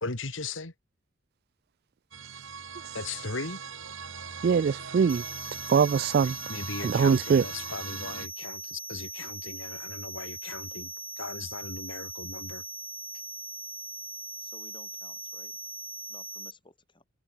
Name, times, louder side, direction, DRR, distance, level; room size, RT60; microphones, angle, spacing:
voice 1, 0.0-0.7 2.9-3.6 6.2-10.9 11.2-12.6, left 3 dB, 80° left, 2.6 m, -38 dB
sound 1, 2.1-8.3, right 6 dB, 80° right, 4.6 m, -41 dB
voice 2, 4.4-5.2 5.7-6.4 6.8-7.5, right 6 dB, 55° right, 0.3 m, -22 dB
sound 2, 5.1-16.5, right 2 dB, 10° right, 3.3 m, -40 dB
voice 3, 14.4-15.6 16.1-17.0, left 2 dB, 25° left, 7.3 m, -56 dB
head